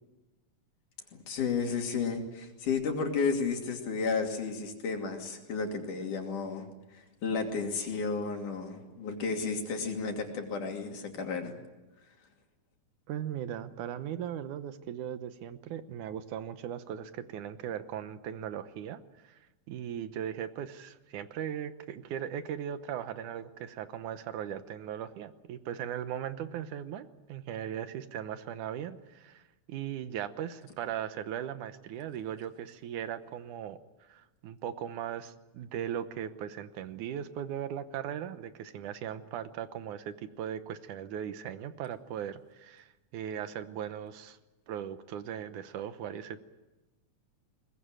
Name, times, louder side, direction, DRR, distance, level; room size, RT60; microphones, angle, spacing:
voice 1, 1.3-6.7 6.9-11.5, left 5 dB, 80° left, 3 dB, 4.2 m, -32 dB
voice 2, 13.1-19.4 19.7-33.8 34.1-44.4 44.7-46.4, right 9 dB, 80° right, 11 dB, 2.5 m, -38 dB
22.0 x 20.0 x 9.0 m, 1.1 s
omnidirectional pair, 3.5 m